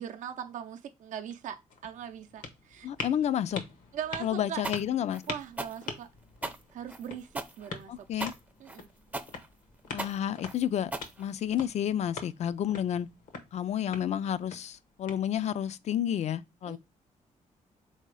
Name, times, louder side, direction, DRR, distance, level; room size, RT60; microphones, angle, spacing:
voice 1, 0.0-2.9 3.9-4.6 5.3-6.1 6.7-8.1 8.6-8.9 16.6-16.8, right 9 dB, 70° right, 0.5 m, -40 dB
sound 1, 1.1-15.7, left 4 dB, 80° left, 0.9 m, -45 dB
voice 2, 2.8-3.6 4.2-5.2 7.9-8.3 9.9-10.9 11.2-13.1 13.5-16.8, left 10 dB, 60° left, 0.4 m, -30 dB
sound 2, 4.6-11.7, right 2 dB, 10° right, 0.5 m, -38 dB
3.7 x 2.8 x 4.6 m
cardioid pair, 95°, 13 cm